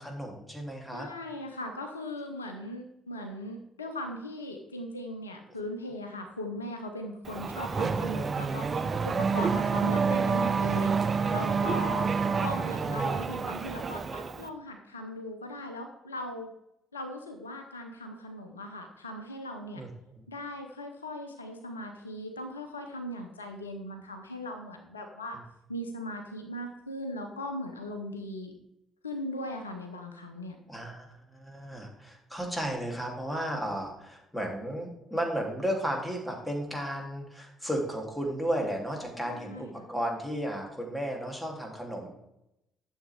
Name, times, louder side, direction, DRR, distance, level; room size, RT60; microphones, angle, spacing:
voice 1, 0.0-1.1 10.0-10.8 19.8-19.9 30.7-42.1, equal, 5° left, 0 dB, 3.3 m, -34 dB
voice 2, 0.9-12.1 12.4-16.5 16.9-19.9 20.3-25.4 25.7-28.5 29.0-30.6 39.2-39.9, left 1 dB, 90° left, 5 dB, 0.8 m, -39 dB
Race car auto racing / Accelerating revving vroom, 7.2-14.5, right 5 dB, 40° right, 0.8 m, -28 dB
12.0 x 7.3 x 3.6 m, 0.83 s
figure-of-eight pair, 50°, 0 cm